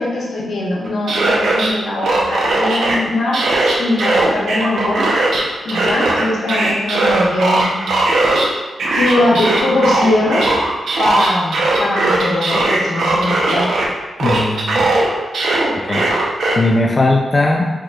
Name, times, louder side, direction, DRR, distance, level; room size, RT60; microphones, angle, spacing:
voice 1, 0.0-5.1 5.6-7.7 8.9-10.5 11.0-13.7, left 2 dB, 80° left, -4 dB, 1.3 m, -20 dB
sound 1, 0.8-1.7 2.0-3.0 3.3-5.4 5.7-8.5 8.8-13.9 14.2-16.6, right 2 dB, 90° right, 0.9 m, -17 dB
voice 2, 14.2-14.9 15.8-16.0 16.5-17.7, left 2 dB, 35° left, 0 dB, 0.4 m, -17 dB
6.2 x 3.5 x 2.4 m, 1.3 s
wide cardioid pair, 115°, 0 cm